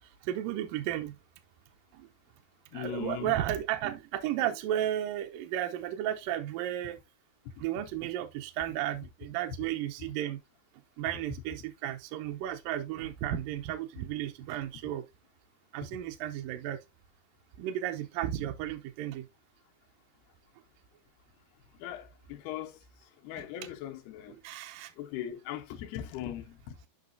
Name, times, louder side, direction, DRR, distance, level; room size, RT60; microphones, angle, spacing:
voice 1, 0.2-1.2 1.9-2.1 2.7-7.0 7.6-10.4 11.0-15.1 15.7-16.8 17.6-19.3 24.4-24.9, right 12 dB, 80° right, 2.0 m, -33 dB
voice 2, 2.7-3.4 7.5-7.6 21.7-24.4 25.0-26.8, left 11 dB, 80° left, 2.7 m, -40 dB
9.3 x 5.4 x 2.5 m
omnidirectional pair, 4.7 m